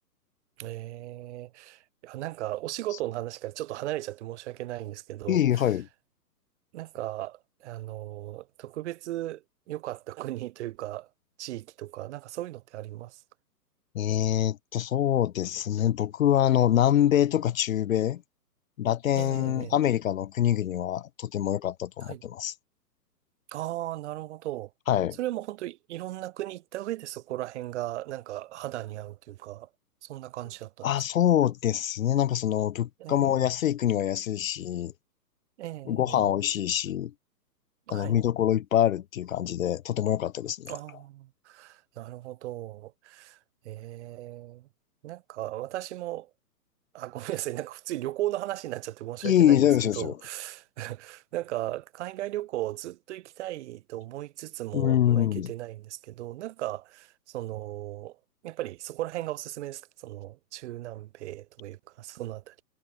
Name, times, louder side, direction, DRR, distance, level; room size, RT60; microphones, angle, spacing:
voice 1, 0.6-5.7 6.7-11.1 11.4-13.2 19.1-19.7 22.0-22.2 23.5-24.7 25.2-29.7 30.0-30.9 33.0-33.3 35.6-36.2 37.9-38.2 40.7-43.4 43.6-44.7 45.0-46.3 46.9-49.6 50.0-58.2 58.4-62.5, right 15 dB, 45° right, 5.0 m, -36 dB
voice 2, 5.3-5.9 13.9-18.2 18.8-22.5 24.9-25.2 30.8-34.9 35.9-37.1 37.9-40.8 49.2-50.1 54.7-55.5, left 11 dB, 55° left, 1.4 m, -25 dB
hypercardioid pair, 135°, 49 cm